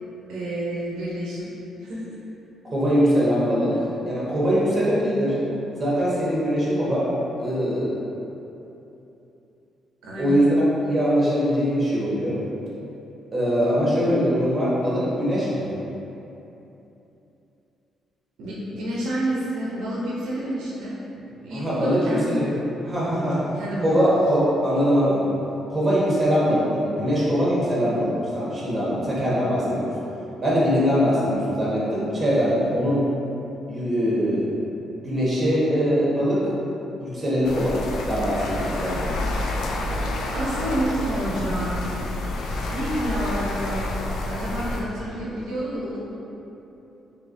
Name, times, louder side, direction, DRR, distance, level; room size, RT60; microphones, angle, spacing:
voice 1, 0.3-1.5 1.8-2.1 10.0-10.4 18.4-22.4 23.0-23.9 40.3-41.9 42.7-43.9 44.3-46.2, right 1 dB, 85° right, -6 dB, 0.5 m, -29 dB
voice 2, 2.6-3.7 4.0-5.4 5.7-7.1 7.4-8.0 10.2-12.4 13.3-15.6 21.5-22.6 22.8-23.4 23.8-25.2 25.7-29.9 30.4-33.0 33.7-34.4 35.0-36.4 37.0-37.8 38.0-39.0, equal, 25° right, -8 dB, 1.1 m, -22 dB
sound 1, 37.4-44.8, left 1 dB, 80° left, 0.3 m, -28 dB
3.3 x 2.7 x 2.6 m, 3.0 s
cardioid pair, 90°, 0 cm